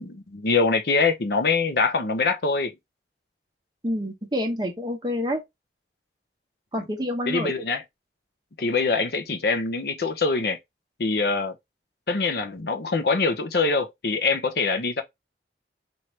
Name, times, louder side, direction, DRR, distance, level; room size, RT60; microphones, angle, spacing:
voice 1, 0.0-2.7 7.3-7.8 8.6-10.6 11.0-11.5 12.1-15.0, left 4 dB, 60° left, 0.7 m, -24 dB
voice 2, 3.8-5.4 6.7-7.5, equal, 25° right, 1.0 m, -28 dB
4.5 x 2.7 x 3.2 m
head